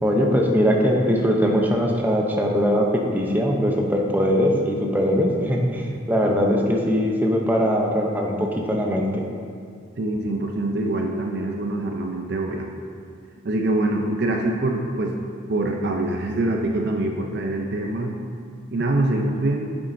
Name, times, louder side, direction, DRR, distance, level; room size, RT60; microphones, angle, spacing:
voice 1, 0.0-9.2, equal, 10° right, 0 dB, 0.6 m, -21 dB
voice 2, 10.0-12.7 13.4-15.2 15.5-18.1 18.7-19.7, right 2 dB, 55° right, 2 dB, 0.5 m, -24 dB
8.1 x 7.4 x 2.6 m, 2.2 s
head